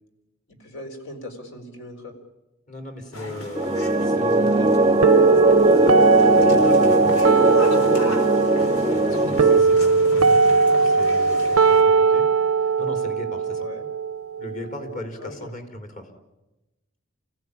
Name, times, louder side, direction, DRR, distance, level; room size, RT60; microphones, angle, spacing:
voice 1, 0.5-2.1 7.1-7.5 13.6-13.9 15.2-15.5, left 2 dB, 60° left, 4 dB, 4.2 m, -39 dB
voice 2, 2.7-5.2 6.8-7.0 9.1-12.3 12.8-13.7 14.4-16.1, left 1 dB, 40° left, 4 dB, 4.1 m, -38 dB
sound 1, 3.1-11.8, left 1 dB, 85° left, 4.0 m, -34 dB
sound 2, 3.6-9.6, right 2 dB, 20° right, 0.8 m, -20 dB
sound 3, 5.0-15.0, right 4 dB, 90° right, 0.8 m, -19 dB
29.0 x 17.0 x 9.9 m, 1.0 s
head